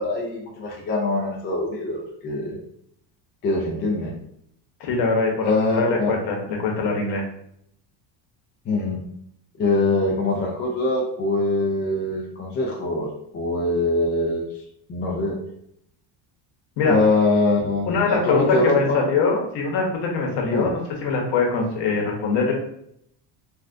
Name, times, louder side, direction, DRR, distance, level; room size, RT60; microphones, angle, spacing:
voice 1, 0.0-2.6 3.4-4.1 5.4-6.1 8.7-9.0 9.6-14.5 14.9-15.4 16.8-19.0 20.5-20.7, left 2 dB, 25° left, -2 dB, 0.3 m, -23 dB
voice 2, 4.8-7.3 16.8-17.0 17.8-22.5, left 4 dB, 55° left, 1 dB, 0.9 m, -23 dB
3.4 x 2.3 x 2.4 m, 0.72 s
cardioid pair, 145°, 48 cm